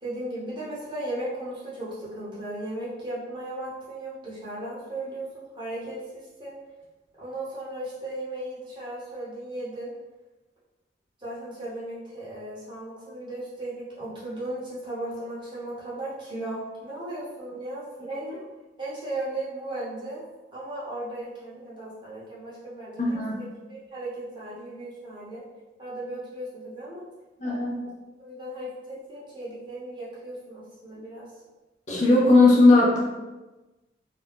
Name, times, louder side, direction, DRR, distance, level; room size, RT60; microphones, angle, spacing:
voice 1, 0.0-6.5 7.2-9.9 11.2-18.5 18.8-20.2 20.5-25.4 25.8-27.0 27.4-27.9 28.2-28.7 29.1-31.3, right 1 dB, 25° right, -8 dB, 0.8 m, -36 dB
voice 2, 23.0-23.4 27.4-27.8 31.9-33.0, left 2 dB, 40° left, -3 dB, 0.5 m, -18 dB
2.4 x 2.2 x 3.4 m, 1.1 s
head